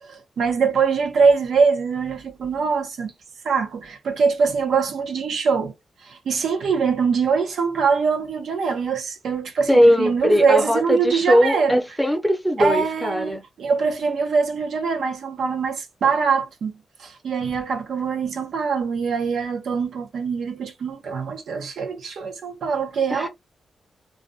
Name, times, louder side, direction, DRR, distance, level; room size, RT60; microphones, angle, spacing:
voice 1, 0.0-3.1 3.4-5.7 6.0-11.8 12.6-16.7 17.0-23.3, right 5 dB, 80° right, 0.6 m, -23 dB
voice 2, 9.7-13.4 23.1-23.3, equal, 5° left, 0.5 m, -19 dB
2.4 x 2.1 x 2.6 m
wide cardioid pair, 115°, 0 cm